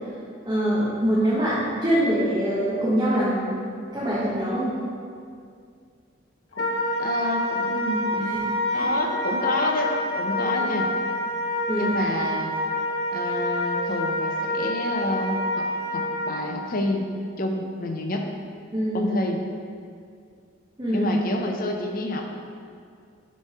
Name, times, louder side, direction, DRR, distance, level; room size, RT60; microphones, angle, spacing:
voice 1, 0.4-3.5 3.9-4.7 8.7-8.8 11.7-12.0 18.7-19.2 20.8-21.1, equal, 20° right, -9 dB, 0.9 m, -23 dB
Wind instrument woodwind instrument, 6.5-16.4, left 1 dB, 90° left, 1.1 m, -27 dB
voice 2, 7.0-8.3 8.7-10.9 11.8-12.5 13.1-17.0 17.4-18.3 18.9-19.4 20.9-22.2, left 2 dB, 45° left, 3 dB, 0.6 m, -29 dB
6.5 x 3.3 x 5.6 m, 2.3 s
head